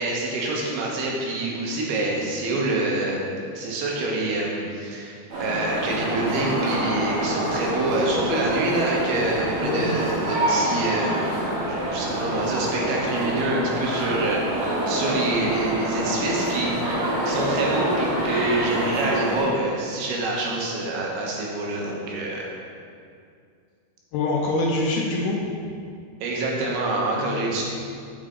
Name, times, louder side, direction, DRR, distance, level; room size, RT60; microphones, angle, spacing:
voice 1, 0.0-3.2 3.6-11.2 11.6-16.7 17.3-22.5 26.2-27.6, right 2 dB, 80° right, -2 dB, 2.9 m, -26 dB
sound 1, 5.3-19.5, right 1 dB, 65° right, 1.9 m, -26 dB
voice 2, 9.6-10.0 24.1-25.4 27.1-27.5, left 2 dB, 80° left, -1 dB, 2.2 m, -25 dB
6.5 x 5.6 x 3.7 m, 2.3 s
omnidirectional pair, 4.5 m